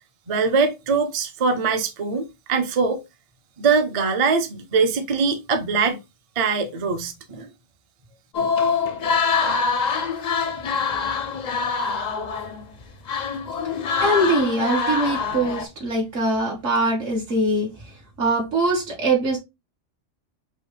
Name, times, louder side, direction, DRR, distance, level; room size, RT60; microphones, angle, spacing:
voice 1, 0.3-3.0 3.6-6.0 6.4-7.5, right 4 dB, 40° right, 0.5 m, -22 dB
sound 1, 8.3-12.8 13.1-15.7, left 5 dB, 55° left, 0.5 m, -24 dB
voice 2, 14.0-17.9 18.2-19.4, right 2 dB, 70° right, 2.0 m, -22 dB
5.4 x 2.2 x 3.2 m
omnidirectional pair, 1.3 m